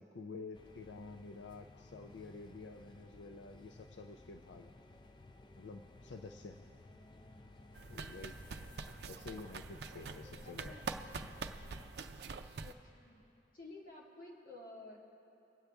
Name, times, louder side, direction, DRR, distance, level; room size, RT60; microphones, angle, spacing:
voice 1, 0.0-4.7 5.6-6.6 7.9-8.3 9.1-10.7, left 3 dB, 85° left, 5 dB, 0.4 m, -50 dB
sound 1, 0.5-11.9, left 2 dB, 25° left, 0.4 m, -57 dB
sound 2, 7.7-12.7, right 4 dB, 65° right, 0.5 m, -45 dB
voice 2, 10.4-10.8 12.6-13.2 13.5-15.0, left 2 dB, 50° left, -2 dB, 1.7 m, -52 dB
23.0 x 8.2 x 3.5 m, 2.8 s
head